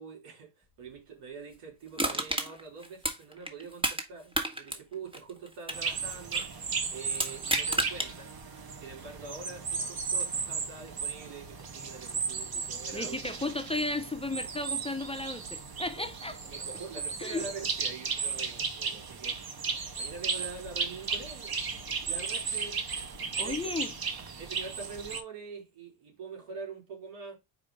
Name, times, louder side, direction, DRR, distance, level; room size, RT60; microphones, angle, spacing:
voice 1, 0.0-8.3 8.8-13.4 15.8-19.5 19.9-22.8 23.4-23.5 24.4-27.4, right 4 dB, 80° right, 3.6 m, -44 dB
Crushing, 2.0-4.1 4.3-6.5 7.1-8.1 8.6-8.7, right 1 dB, 10° right, 1.6 m, -31 dB
Birds in the forest, 5.7-25.2, right 5 dB, 45° right, 1.6 m, -35 dB
voice 2, 12.9-16.4 17.2-17.4 23.4-23.9, left 2 dB, 10° left, 0.7 m, -34 dB
4.9 x 4.3 x 5.2 m
cardioid pair, 80°, 50 cm